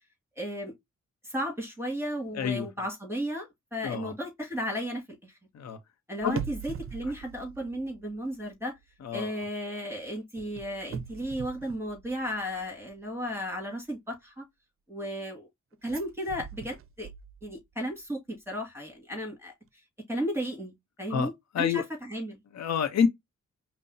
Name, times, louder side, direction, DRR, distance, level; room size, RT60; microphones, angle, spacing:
voice 1, 0.4-0.7 1.2-5.3 6.1-8.8 9.1-14.4 14.9-15.5 15.8-17.1 17.4-19.5 20.1-20.7 21.0-22.4, equal, 10° right, 1.9 m, -34 dB
voice 2, 2.3-2.7 3.8-4.1 5.5-5.8 6.2-6.4 9.0-9.3 21.1-21.3 21.5-21.8 22.5-23.1, left 7 dB, 60° left, 0.7 m, -27 dB
sound 1, 6.2-8.5 8.8-9.1 10.4-12.6 15.8-17.7 18.0-18.1, right 7 dB, 45° right, 0.5 m, -42 dB
5.3 x 2.0 x 2.6 m
cardioid pair, 65°, 30 cm